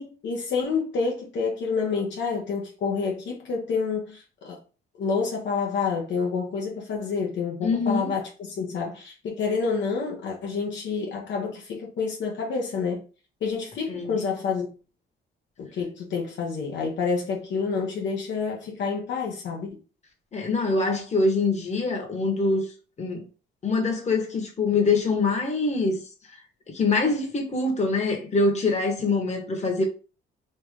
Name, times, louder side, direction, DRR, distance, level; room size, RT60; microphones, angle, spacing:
voice 1, 0.0-4.6 5.0-13.0 13.4-14.7 15.6-19.8, left 5 dB, 65° left, 0.8 m, -28 dB
voice 2, 7.6-8.2 13.9-14.2 20.3-22.7 23.0-23.3 23.6-26.0 26.7-29.8, left 3 dB, 35° left, 1.2 m, -24 dB
3.2 x 2.6 x 3.5 m
cardioid pair, 90°, 20 cm